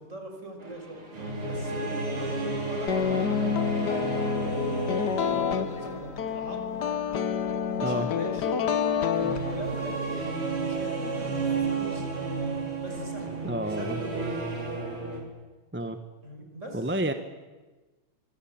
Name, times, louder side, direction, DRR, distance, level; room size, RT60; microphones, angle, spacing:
voice 1, 0.0-3.3 3.7-6.8 7.7-8.9 9.4-10.3 10.5-12.1 12.8-13.3 13.8-14.7 16.2-16.8, right 1 dB, 30° right, 3 dB, 6.2 m, -41 dB
sound 1, 0.6-15.2, right 3 dB, 80° right, 5.2 m, -33 dB
sound 2, 2.9-10.0, left 8 dB, 55° left, 1.7 m, -28 dB
voice 2, 13.4-14.0 15.7-16.0 16.7-17.1, right 1 dB, 10° right, 8 dB, 0.9 m, -29 dB
25.5 x 24.0 x 8.9 m, 1.2 s
omnidirectional pair, 2.4 m